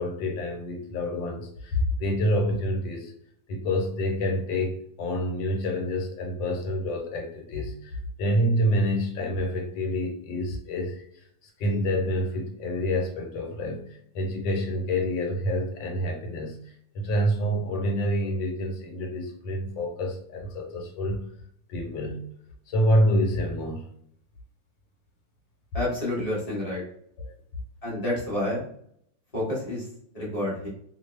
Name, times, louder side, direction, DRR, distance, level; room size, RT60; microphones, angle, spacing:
voice 1, 0.0-3.1 3.5-13.9 14.1-21.3 21.7-22.2 22.7-23.9 27.2-27.4, equal, 85° left, 2 dB, 1.4 m, -27 dB
voice 2, 25.7-26.8 27.8-28.6 29.3-29.9 30.1-30.7, left 1 dB, 25° left, -6 dB, 0.9 m, -29 dB
3.0 x 2.1 x 3.1 m, 0.67 s
omnidirectional pair, 2.0 m